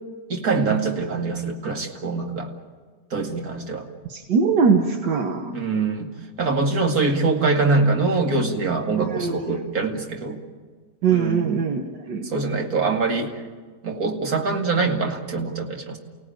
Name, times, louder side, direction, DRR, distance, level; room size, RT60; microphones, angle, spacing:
voice 1, 0.3-2.5 3.1-3.9 5.5-6.1 6.4-10.4 11.1-11.4 12.2-13.3 13.8-16.0, right 3 dB, 55° right, 2 dB, 2.8 m, -23 dB
voice 2, 4.1-5.6 9.0-9.6 11.0-12.3, right 5 dB, 80° right, 5 dB, 1.9 m, -22 dB
29.5 x 17.5 x 9.1 m, 1.5 s
omnidirectional pair, 1.9 m